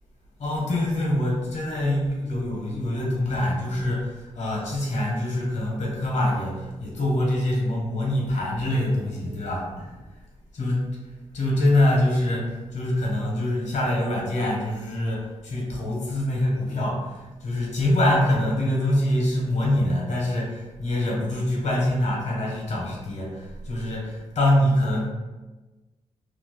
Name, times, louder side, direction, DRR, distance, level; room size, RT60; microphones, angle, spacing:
voice 1, 0.4-9.9 10.6-10.7 11.3-25.1, left 1 dB, 70° left, -3 dB, 1.2 m, -25 dB
2.8 x 2.4 x 3.8 m, 1.2 s
cardioid pair, 110°, 12 cm